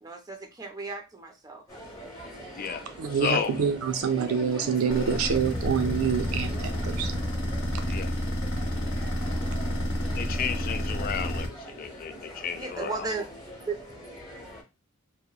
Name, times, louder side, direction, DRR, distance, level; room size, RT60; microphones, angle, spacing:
voice 1, 0.0-1.6 12.6-13.3 13.6-13.8, right 4 dB, 15° right, 0.5 m, -35 dB
sound 1, 1.7-14.6, equal, 15° left, 0.8 m, -43 dB
voice 2, 2.6-7.3 7.7-8.0 9.5-9.6, right 6 dB, 70° right, 0.4 m, -27 dB
voice 3, 3.2-3.5 7.9-8.1 10.2-13.1, left 7 dB, 40° left, 0.3 m, -32 dB
sound 2, 4.9-11.5, equal, 60° left, 0.7 m, -30 dB
2.8 x 2.1 x 2.3 m
head